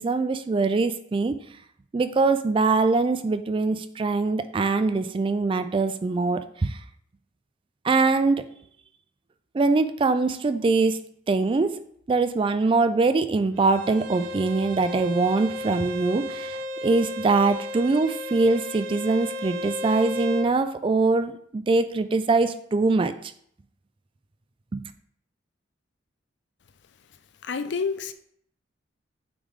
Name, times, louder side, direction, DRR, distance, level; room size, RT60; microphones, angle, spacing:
voice 1, 0.0-1.4 1.9-6.8 7.8-8.5 9.5-23.3 24.7-24.9, right 3 dB, 30° right, 0.3 m, -23 dB
Bowed string instrument, 13.6-20.5, left 1 dB, 85° right, 0.6 m, -34 dB
voice 2, 27.4-28.1, left 5 dB, 65° left, 0.5 m, -28 dB
8.6 x 3.3 x 3.6 m
head